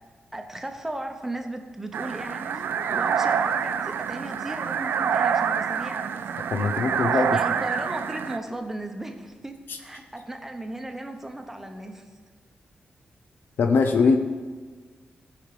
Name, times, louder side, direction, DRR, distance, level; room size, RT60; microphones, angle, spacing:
voice 1, 0.3-6.2 7.3-12.0, right 1 dB, 10° right, 5 dB, 0.9 m, -36 dB
sound 1, 1.9-8.4, right 7 dB, 80° right, 0.4 m, -26 dB
voice 2, 6.5-7.4 9.7-9.8 13.6-14.2, left 4 dB, 75° left, 6 dB, 0.6 m, -21 dB
15.0 x 5.0 x 5.0 m, 1.5 s
wide cardioid pair, 140°, 4 cm